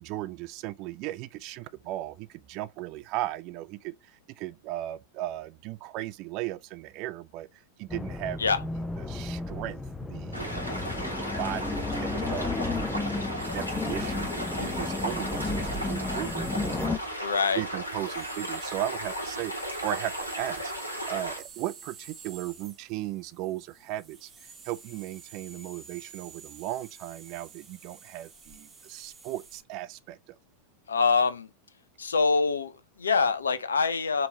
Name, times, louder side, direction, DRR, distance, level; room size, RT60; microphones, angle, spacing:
voice 1, 0.0-7.5 7.8-8.4 9.0-17.1 17.6-24.3 24.6-30.4, right 15 dB, 40° right, 0.4 m, -37 dB
sound 1, 7.9-17.0, left 3 dB, 10° left, 0.5 m, -33 dB
sound 2, 10.3-21.4, equal, 85° left, 1.4 m, -35 dB
sound 3, 13.4-29.6, right 5 dB, 20° right, 1.1 m, -49 dB
voice 2, 17.2-17.6 30.9-31.5 32.0-34.3, left 5 dB, 70° left, 0.6 m, -25 dB
5.2 x 3.0 x 2.7 m
figure-of-eight pair, 90°, 0 cm